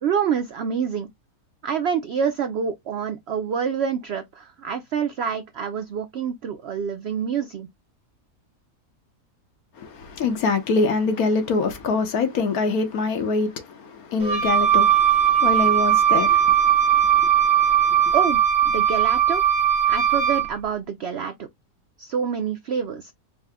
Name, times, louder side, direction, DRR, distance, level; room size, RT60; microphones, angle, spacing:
voice 1, 0.0-1.1 1.6-7.7 18.1-19.4 19.9-21.5 22.0-23.1, right 7 dB, 75° right, 0.6 m, -27 dB
voice 2, 9.8-18.1, left 4 dB, 70° left, 1.4 m, -25 dB
Wind instrument woodwind instrument, 14.2-20.5, right 9 dB, 40° right, 0.7 m, -19 dB
4.7 x 2.1 x 3.4 m
omnidirectional pair, 1.6 m